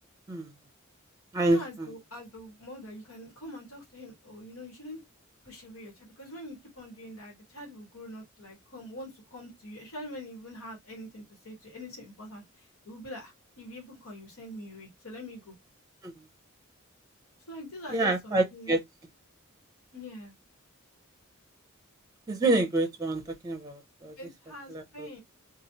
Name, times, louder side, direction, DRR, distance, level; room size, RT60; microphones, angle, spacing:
voice 1, 1.5-5.0 5.4-15.5 17.5-18.8 19.9-20.3 24.2-25.2, left 1 dB, 85° left, 1.5 m, -44 dB
voice 2, 17.9-18.8 22.3-24.1 24.7-25.1, right 2 dB, 20° right, 0.6 m, -27 dB
3.1 x 2.4 x 2.8 m
head